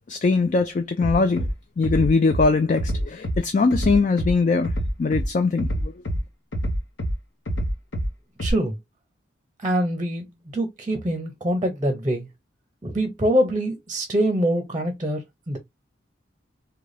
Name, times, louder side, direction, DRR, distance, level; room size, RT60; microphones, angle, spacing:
voice 1, 0.1-1.5 1.8-4.7 5.0-5.9, left 4 dB, 40° left, 0.3 m, -21 dB
Bass drum, 1.0-1.5 1.8-2.4 2.8-3.4 3.7-4.3 4.6-5.2 5.6-6.2 6.5-7.1 7.5-8.1 8.4-8.5, equal, 75° left, 0.9 m, -26 dB
voice 2, 8.4-8.8 9.6-10.2 10.5-12.3 12.8-15.6, equal, 20° right, 0.6 m, -24 dB
3.8 x 2.2 x 3.2 m
head